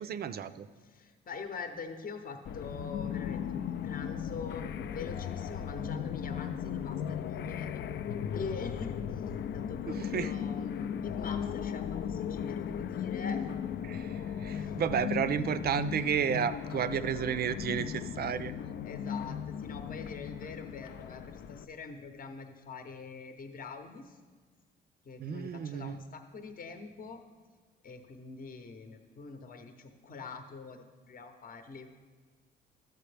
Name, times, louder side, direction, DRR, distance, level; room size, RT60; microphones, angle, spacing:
voice 1, 0.0-0.7 9.9-10.3 13.8-18.5 25.2-25.9, right 8 dB, 50° right, 13 dB, 0.5 m, -32 dB
voice 2, 0.8-9.2 9.5-13.5 14.5-14.8 18.8-24.2 25.0-27.2 27.8-31.9, left 4 dB, 45° left, 6 dB, 0.8 m, -44 dB
sound 1, 2.4-21.6, left 8 dB, 60° left, 0.4 m, -36 dB
12.5 x 7.8 x 3.4 m, 1.4 s
cardioid pair, 90°, 20 cm